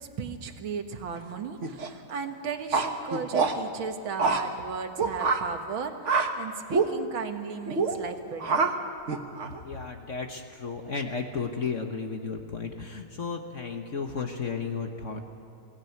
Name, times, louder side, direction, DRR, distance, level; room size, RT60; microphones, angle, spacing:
voice 1, 0.0-8.7, right 6 dB, 70° right, 6 dB, 2.1 m, -36 dB
sound 1, 1.6-1.9 2.7-3.5 4.2-4.4 5.0-5.4 6.0-6.3 6.7-6.9 7.7-8.0 8.4-8.7 9.1-9.6, right 4 dB, 40° right, 1.3 m, -25 dB
voice 2, 9.6-15.2, left 5 dB, 45° left, 4 dB, 1.2 m, -33 dB
22.5 x 17.0 x 9.3 m, 2.4 s
omnidirectional pair, 2.3 m